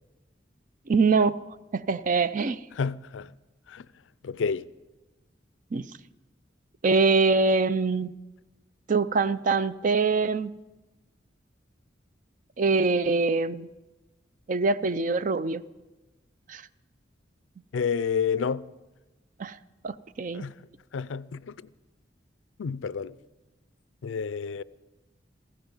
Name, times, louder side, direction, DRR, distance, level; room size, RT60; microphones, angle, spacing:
voice 1, 0.9-1.4 1.7-2.6 5.7-5.9 6.8-8.1 8.9-10.5 12.6-13.7 14.5-15.6 16.5-16.6 19.4-19.6 19.8-20.4, right 4 dB, 45° right, 0.4 m, -24 dB
voice 2, 2.7-3.3 3.7-3.9 4.2-4.7 17.7-18.7 20.3-20.5 20.9-21.6 22.6-23.2 24.0-24.6, left 6 dB, 90° left, 0.4 m, -29 dB
16.5 x 15.0 x 5.4 m
head